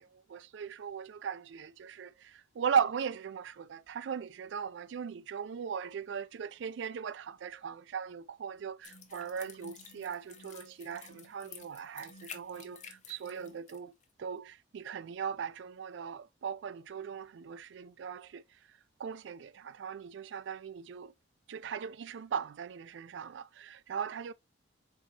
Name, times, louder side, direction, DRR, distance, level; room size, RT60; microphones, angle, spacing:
voice 1, 0.0-13.9 14.2-18.4 19.0-21.1 21.5-24.3, right 7 dB, 70° right, 0.3 m, -38 dB
sound 1, 8.8-13.8 14.0-14.1, left 6 dB, 40° left, 0.7 m, -51 dB
4.5 x 3.9 x 2.8 m
head